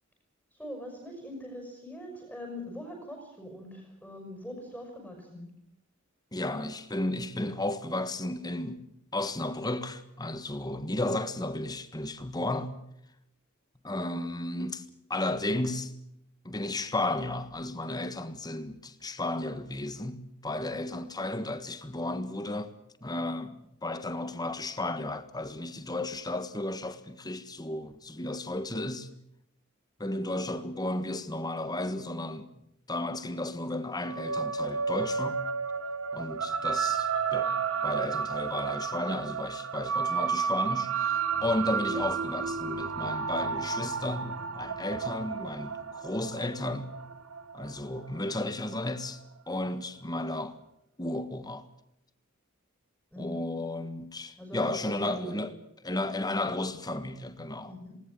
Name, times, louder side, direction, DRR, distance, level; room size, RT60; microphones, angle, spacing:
voice 1, 0.5-5.5 53.1-53.4 54.4-55.4 57.7-58.0, left 1 dB, ahead, 6.3 m, -42 dB
voice 2, 6.3-8.8 9.1-12.8 13.8-14.8 15.1-15.9 16.4-22.7 23.0-29.1 30.0-32.5 32.9-35.4 36.1-37.5 37.8-46.9 47.5-49.2 49.5-50.6 51.0-51.7 53.2-55.5 55.8-57.7, left 2 dB, 20° left, 1.5 m, -33 dB
sound 1, 34.0-48.7, right 6 dB, 75° right, 1.3 m, -32 dB
19.5 x 18.5 x 8.8 m
head